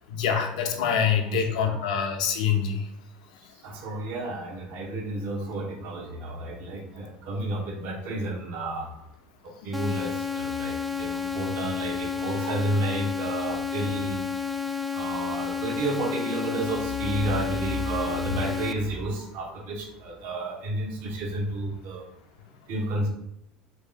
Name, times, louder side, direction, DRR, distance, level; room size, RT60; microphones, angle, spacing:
voice 1, 0.1-2.8, left 7 dB, 75° left, 4 dB, 0.5 m, -25 dB
voice 2, 1.3-1.8 3.5-8.9 9.4-14.2 14.9-22.1 22.7-23.1, right 1 dB, 60° right, 1 dB, 0.9 m, -31 dB
sound 1, 9.7-18.7, left 6 dB, ahead, 0.3 m, -31 dB
3.2 x 2.7 x 3.8 m, 0.82 s
hypercardioid pair, 75°, 4 cm